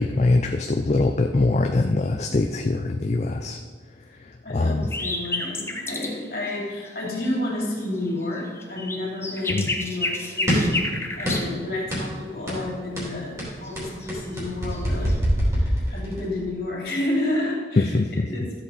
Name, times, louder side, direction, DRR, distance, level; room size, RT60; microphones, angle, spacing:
voice 1, 0.0-3.6 4.5-4.9 9.5-9.7 17.8-18.3, left 2 dB, 40° left, 5 dB, 0.4 m, -22 dB
voice 2, 4.4-15.2 15.5-18.6, left 1 dB, 55° left, -2 dB, 2.9 m, -30 dB
sound 1, 4.8-6.1 6.5-6.6 6.9-7.3 7.6-11.4 13.6-14.4 14.7-15.2, left 2 dB, 15° left, 0.9 m, -30 dB
sound 2, 10.5-10.8 11.2-11.6 11.9-12.1 12.5-12.7 13.0-16.3, equal, 15° right, 3.1 m, -25 dB
13.0 x 7.7 x 4.1 m, 1.5 s
head